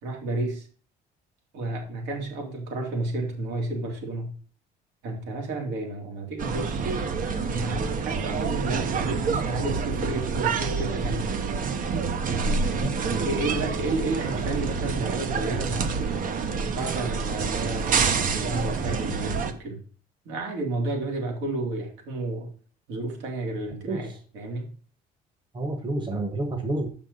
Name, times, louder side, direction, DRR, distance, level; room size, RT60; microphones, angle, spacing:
voice 1, 0.0-0.7 1.5-4.3 5.0-6.8 7.5-11.3 12.2-12.6 13.0-15.9 16.6-19.8 20.3-22.5 22.9-24.1 24.3-24.7, right 2 dB, 75° right, 1 dB, 3.4 m, -31 dB
sound 1, 6.4-19.5, right 5 dB, 50° right, 1.1 m, -27 dB
voice 2, 12.8-13.4 23.9-24.0 25.5-26.9, right 2 dB, 25° right, 6 dB, 1.4 m, -29 dB
6.7 x 5.9 x 5.5 m, 0.41 s
cardioid pair, 110°, 18 cm